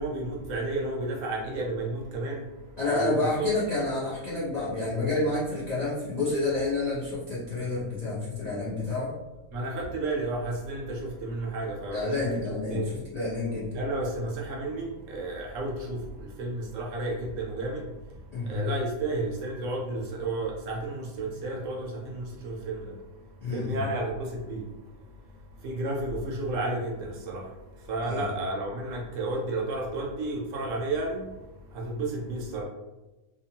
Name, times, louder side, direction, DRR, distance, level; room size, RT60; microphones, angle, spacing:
voice 1, 0.0-2.4 2.9-3.5 9.5-12.4 12.7-12.9 13.7-16.0 16.4-17.8 18.5-22.8 23.5-24.6 25.6-27.4 27.9-31.2 31.7-32.6, right 2 dB, 65° right, -2 dB, 0.9 m, -32 dB
voice 2, 2.8-9.1 11.9-13.7 18.3-18.6 23.4-23.8 28.0-28.3, left 3 dB, 40° left, -8 dB, 0.6 m, -29 dB
2.8 x 2.2 x 2.8 m, 1.1 s
omnidirectional pair, 1.5 m